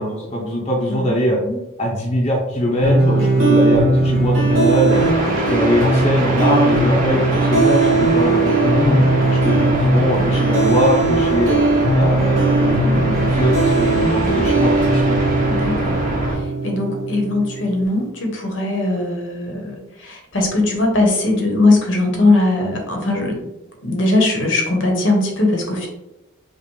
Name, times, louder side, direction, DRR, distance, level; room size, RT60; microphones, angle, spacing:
voice 1, 0.0-1.4 1.8-5.0 5.5-9.0 9.4-11.6 11.9-15.2, equal, 30° left, -3 dB, 0.7 m, -21 dB
voice 2, 0.9-1.6 15.5-16.0 16.3-23.5 23.8-25.9, left 2 dB, 60° left, 1 dB, 0.8 m, -20 dB
sound 1, 2.8-17.8, right 2 dB, 65° right, 1.3 m, -18 dB
sound 2, 4.9-16.3, right 1 dB, 40° right, 1.0 m, -24 dB
5.2 x 2.0 x 3.1 m, 0.92 s
head